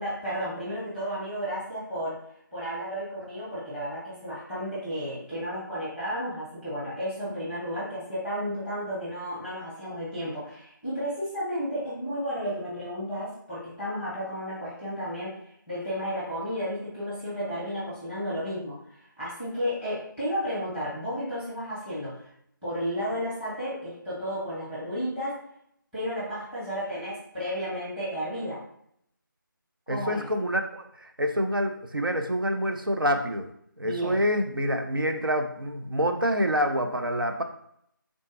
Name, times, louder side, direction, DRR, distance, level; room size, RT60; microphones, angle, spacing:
voice 1, 0.0-2.2 2.5-15.4 15.7-22.3 22.6-25.4 25.9-28.6 29.9-30.3 33.8-34.2, equal, 5° right, -11 dB, 0.9 m, -33 dB
voice 2, 29.9-33.5 33.8-37.4, equal, 80° right, 5 dB, 0.6 m, -27 dB
3.9 x 3.6 x 2.6 m, 0.69 s
figure-of-eight pair, 160°, 11 cm